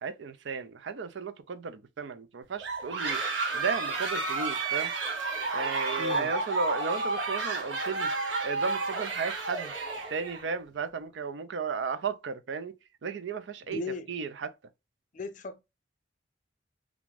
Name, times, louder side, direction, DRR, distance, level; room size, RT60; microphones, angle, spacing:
voice 1, 0.0-3.2 3.5-4.9 5.5-8.1 8.4-9.7 10.1-12.7 13.0-13.8 14.1-14.5, right 5 dB, 75° right, 0.4 m, -34 dB
sound 1, 2.6-10.5, right 3 dB, 90° right, 0.9 m, -31 dB
voice 2, 6.0-6.3 13.7-14.1 15.1-15.6, left 3 dB, 45° left, 0.4 m, -36 dB
2.5 x 2.3 x 3.1 m
head